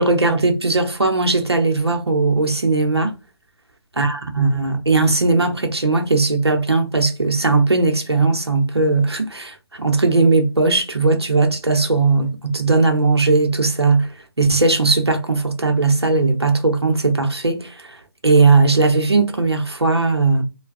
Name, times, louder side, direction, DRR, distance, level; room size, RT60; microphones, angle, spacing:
voice 1, 0.0-3.1 4.0-14.1 14.4-17.8 18.2-20.4, right 3 dB, 90° right, 0.7 m, -18 dB
3.3 x 2.2 x 2.4 m
figure-of-eight pair, 140°, 13 cm